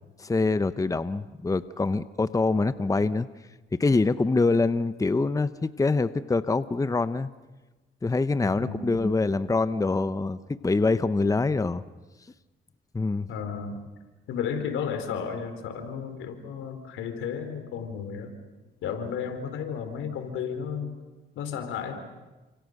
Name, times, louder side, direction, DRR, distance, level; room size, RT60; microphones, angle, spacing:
voice 1, 0.2-3.3 3.7-7.3 8.0-11.8 12.9-13.3, left 3 dB, 15° left, 13 dB, 0.9 m, -25 dB
voice 2, 8.4-8.9 13.3-13.8 14.3-18.4 18.8-20.9 21.4-21.9, left 7 dB, 85° left, 8 dB, 4.1 m, -33 dB
29.5 x 27.0 x 6.6 m, 1.2 s
cardioid pair, 90°, 20 cm